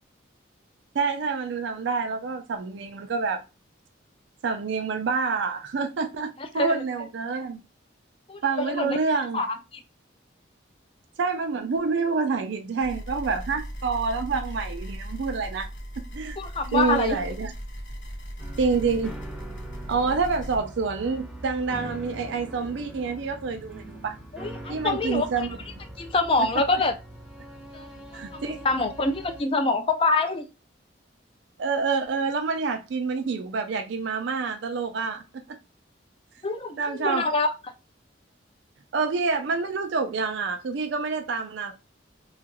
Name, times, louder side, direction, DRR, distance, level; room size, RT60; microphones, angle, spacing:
voice 1, 0.9-3.4 4.4-7.6 8.4-9.4 11.2-15.7 16.1-16.4 16.7-17.5 18.6-19.1 19.9-24.2 24.7-25.6 26.4-26.5 28.1-28.7 31.6-35.6 36.8-37.3 38.9-41.7, right 4 dB, 70° right, 0.4 m, -27 dB
voice 2, 6.4-6.8 8.3-8.4 8.7-9.0 9.3-9.6 16.4-17.2 24.3-25.3 26.0-27.0 27.7-27.9 28.3-30.5 36.4-37.5, left 3 dB, 30° left, 0.4 m, -25 dB
sound 1, 12.8-20.6, equal, 70° left, 0.8 m, -38 dB
sound 2, 18.4-29.4, right 1 dB, 5° right, 0.7 m, -42 dB
2.8 x 2.3 x 2.9 m
head